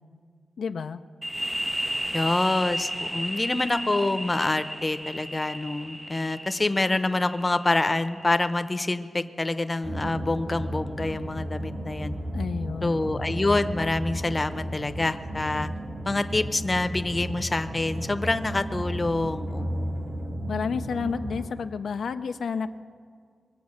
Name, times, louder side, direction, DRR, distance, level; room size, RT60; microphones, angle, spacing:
voice 1, 0.6-1.0 12.3-13.0 20.5-22.7, left 6 dB, 80° left, 8 dB, 0.4 m, -30 dB
sound 1, 1.2-8.7, equal, 5° right, 0.4 m, -34 dB
voice 2, 2.1-12.1 12.8-15.7 16.0-20.0, left 2 dB, 30° left, 10 dB, 0.7 m, -26 dB
sound 2, 9.8-21.5, right 1 dB, 45° right, 2.0 m, -34 dB
22.5 x 8.0 x 6.4 m, 2.1 s
cardioid pair, 70°, 0 cm